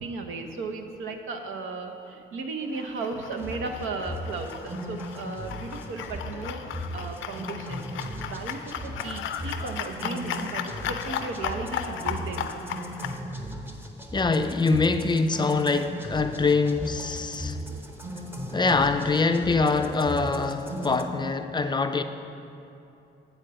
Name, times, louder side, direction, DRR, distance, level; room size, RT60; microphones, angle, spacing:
voice 1, 0.0-6.6 6.9-7.9 8.2-12.5, right 3 dB, 85° right, 4 dB, 0.8 m, -35 dB
sound 1, 2.7-13.2, left 9 dB, 80° left, 0.5 m, -36 dB
sound 2, 3.4-21.0, equal, 10° right, 0.8 m, -37 dB
voice 2, 14.1-17.6 18.5-22.0, left 4 dB, 20° left, 7 dB, 0.4 m, -24 dB
9.0 x 4.4 x 6.8 m, 2.7 s
cardioid pair, 90°, 20 cm